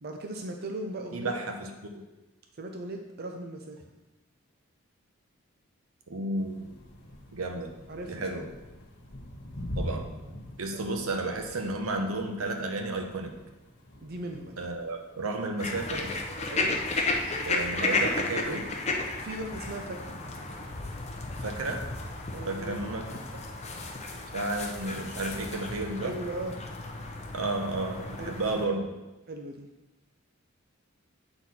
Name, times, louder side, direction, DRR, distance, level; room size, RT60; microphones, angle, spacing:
voice 1, 0.0-1.4 2.6-3.8 7.9-8.4 10.7-10.9 14.0-14.7 16.5-16.8 19.1-20.2 22.3-22.9 26.0-26.5 28.2-28.7 29.3-29.7, right 2 dB, 45° right, 3 dB, 0.5 m, -38 dB
voice 2, 1.1-2.0 6.1-6.7 7.3-7.7 8.1-8.5 9.7-10.1 10.6-13.3 14.6-16.1 17.4-18.7 21.4-21.8 22.5-23.4 24.3-26.1 27.3-28.9, right 2 dB, 85° right, 5 dB, 0.8 m, -32 dB
sound 1, 6.4-25.2, left 1 dB, 55° left, 1.1 m, -45 dB
sound 2, 15.6-28.7, left 3 dB, 30° left, 0.7 m, -33 dB
7.9 x 4.1 x 4.2 m, 1.1 s
head